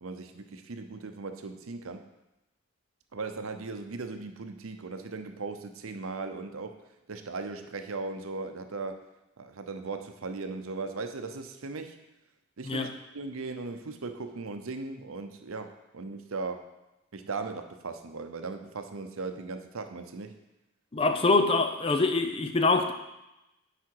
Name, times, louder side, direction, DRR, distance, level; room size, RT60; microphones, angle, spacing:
voice 1, 0.0-2.0 3.1-6.8 7.1-9.0 9.4-12.0 12.6-16.6 17.1-20.3, right 3 dB, 85° right, 7 dB, 0.7 m, -38 dB
voice 2, 20.9-22.9, left 3 dB, 25° left, 7 dB, 0.5 m, -24 dB
8.5 x 5.1 x 4.6 m, 0.94 s
head